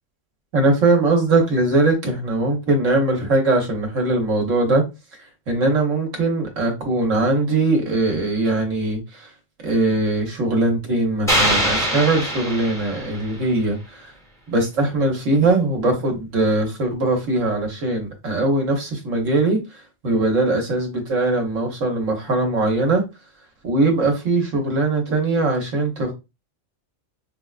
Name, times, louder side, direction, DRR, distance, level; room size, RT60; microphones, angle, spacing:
voice 1, 0.5-4.8 5.5-9.3 9.6-14.1 14.5-23.0 23.6-26.1, right 2 dB, 75° right, 1.4 m, -21 dB
sound 1, 11.3-13.4, equal, 5° left, 0.7 m, -23 dB
5.1 x 2.2 x 2.3 m
omnidirectional pair, 1.3 m